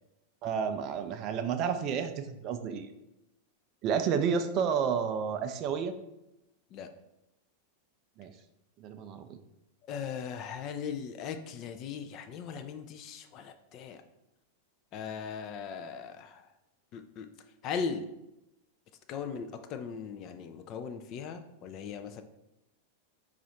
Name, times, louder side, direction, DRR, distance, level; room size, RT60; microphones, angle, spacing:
voice 1, 0.4-2.9 3.8-5.9 8.2-8.3 8.8-9.4, right 7 dB, 35° right, 8 dB, 0.4 m, -31 dB
voice 2, 9.9-14.0 14.9-16.4 16.9-17.3 17.6-18.0 19.1-22.2, left 6 dB, 35° left, 7 dB, 0.4 m, -38 dB
4.8 x 2.4 x 4.1 m, 0.90 s
figure-of-eight pair, 90°, 0 cm